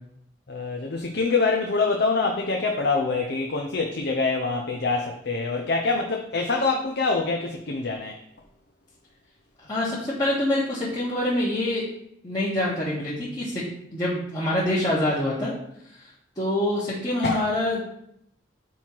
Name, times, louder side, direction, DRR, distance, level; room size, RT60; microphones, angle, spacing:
voice 1, 0.5-8.2 17.2-17.4, left 3 dB, 60° left, 2 dB, 0.6 m, -25 dB
voice 2, 9.6-11.9 12.2-13.6 13.9-15.5 16.0-16.1 16.4-17.8, left 1 dB, 20° left, -10 dB, 1.4 m, -25 dB
5.5 x 4.5 x 4.5 m, 0.73 s
head